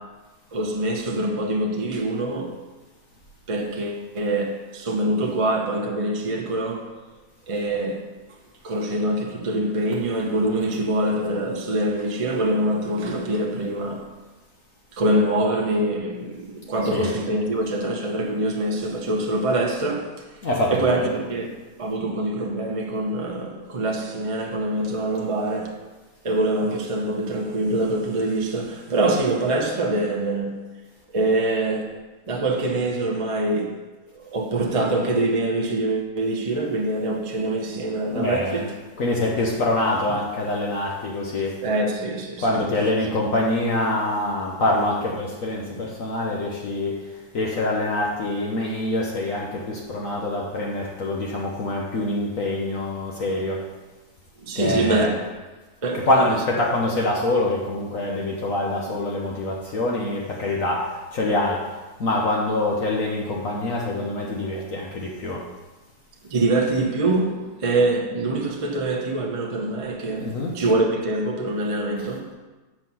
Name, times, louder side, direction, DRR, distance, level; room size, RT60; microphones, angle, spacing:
voice 1, 0.5-2.6 3.5-7.0 7.5-8.1 8.6-14.1 14.9-20.3 20.7-25.8 26.2-30.7 31.1-32.0 32.3-33.8 34.1-38.7 41.6-42.6 54.4-55.3 55.8-56.2 66.2-72.3, right 2 dB, 30° right, 0.7 m, -24 dB
voice 2, 16.7-17.1 20.4-21.2 38.1-38.7 39.0-41.6 42.4-47.0 47.3-53.6 54.5-55.1 56.0-61.7 62.0-65.5 70.2-70.6 72.0-72.1, left 2 dB, 55° left, 1.3 m, -25 dB
7.4 x 6.1 x 5.6 m
omnidirectional pair, 1.8 m